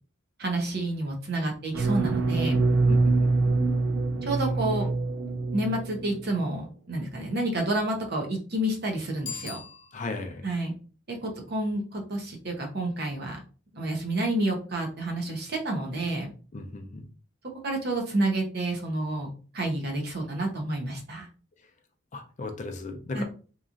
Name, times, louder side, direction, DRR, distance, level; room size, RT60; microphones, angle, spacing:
voice 1, 0.4-2.6 4.2-4.9 5.5-9.6 10.4-10.7 11.1-13.4 13.7-16.3 17.6-19.3 19.5-21.3 23.1-23.2, right 1 dB, 50° right, 2 dB, 0.7 m, -29 dB
sound 1, 1.7-6.3, right 3 dB, 75° right, 0.4 m, -25 dB
voice 2, 2.9-3.5 9.9-10.4 16.5-17.0 22.1-23.2, left 2 dB, 40° left, 5 dB, 0.5 m, -36 dB
Bicycle bell, 9.2-10.4, left 6 dB, 55° left, 0.9 m, -40 dB
2.9 x 2.4 x 2.4 m, 0.38 s
head